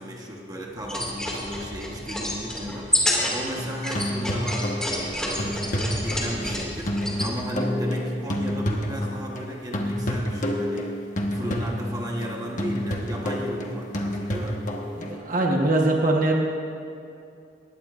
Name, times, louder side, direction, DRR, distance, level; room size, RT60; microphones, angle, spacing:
voice 1, 0.0-5.7 5.9-14.6, equal, 20° right, -1 dB, 1.2 m, -34 dB
sound 1, 0.8-7.3, left 1 dB, 5° left, 2.2 m, -29 dB
sound 2, 3.2-9.5 9.7-15.2, equal, 45° left, 1.3 m, -29 dB
voice 2, 14.9-16.3, right 2 dB, 45° right, 0 dB, 1.2 m, -22 dB
20.0 x 17.0 x 2.5 m, 2.6 s
head